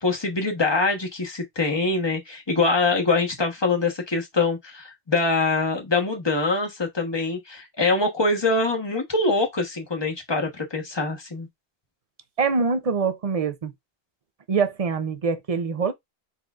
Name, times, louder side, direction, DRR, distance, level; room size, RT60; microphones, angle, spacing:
voice 1, 0.0-11.5, left 3 dB, 25° left, 1.1 m, -24 dB
voice 2, 12.4-13.7 14.5-15.9, right 5 dB, 40° right, 0.6 m, -24 dB
4.2 x 3.6 x 2.4 m
omnidirectional pair, 1.1 m